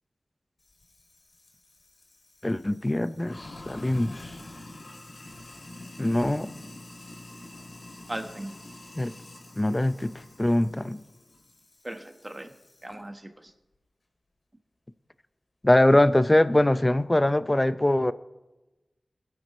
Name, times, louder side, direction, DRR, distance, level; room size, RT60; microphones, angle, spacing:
Sink (filling or washing), 0.6-12.9, left 2 dB, 75° left, 2.4 m, -47 dB
voice 1, 2.4-4.2 6.0-6.5 9.0-9.1 9.6-11.0 15.6-18.1, left 1 dB, 20° left, 14 dB, 0.6 m, -22 dB
voice 2, 8.1-8.5 11.8-12.5 12.8-13.5, right 1 dB, 25° right, 6 dB, 1.2 m, -37 dB
20.0 x 9.6 x 3.1 m, 1.0 s
wide cardioid pair, 65°, 0 cm